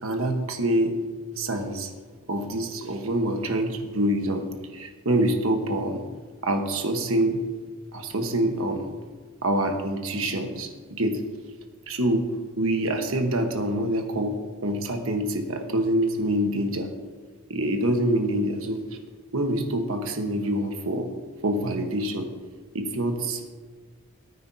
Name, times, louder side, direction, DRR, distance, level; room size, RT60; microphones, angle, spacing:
voice 1, 0.0-0.9 1.4-1.9 2.3-4.4 4.7-6.0 6.4-7.4 7.9-8.9 9.4-11.2 11.9-12.3 12.6-14.4 14.6-16.9 17.5-18.8 19.3-21.1 21.4-22.3 22.7-23.5, right 1 dB, 70° right, 4 dB, 1.3 m, -26 dB
17.5 x 9.6 x 2.8 m, 1.5 s
head